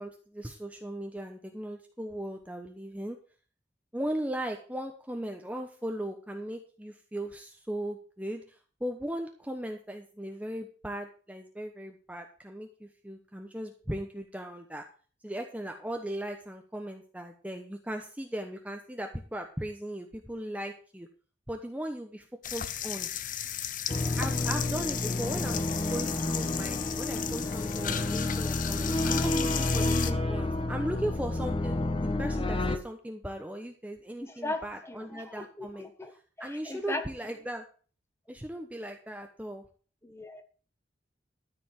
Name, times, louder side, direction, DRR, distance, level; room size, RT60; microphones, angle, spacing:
voice 1, 0.0-3.2 3.9-14.8 15.2-21.1 21.5-22.3 22.5-23.1 24.2-25.6 25.9-35.9 36.4-37.6 38.3-39.6, right 1 dB, 10° right, 4 dB, 1.0 m, -38 dB
sound 1, 22.4-30.1, left 7 dB, 45° left, 0.8 m, -34 dB
sound 2, 23.9-32.8, left 2 dB, 30° left, 1.3 m, -30 dB
voice 2, 34.2-36.1 36.4-37.4 40.0-40.4, left 2 dB, 15° left, 6 dB, 1.5 m, -38 dB
13.0 x 5.1 x 7.6 m, 0.40 s
head